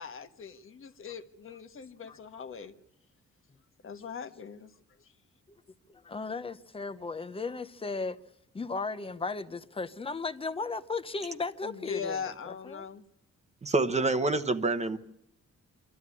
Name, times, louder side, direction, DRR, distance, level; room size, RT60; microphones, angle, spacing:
voice 1, 0.0-2.7 3.8-4.7 5.0-5.1 11.6-13.0, left 6 dB, 45° left, 1.3 m, -40 dB
voice 2, 5.9-8.2 8.5-12.8, left 4 dB, 20° left, 0.8 m, -36 dB
voice 3, 13.6-15.0, right 3 dB, 20° right, 1.0 m, -27 dB
25.0 x 13.5 x 9.8 m
wide cardioid pair, 175°, 30 cm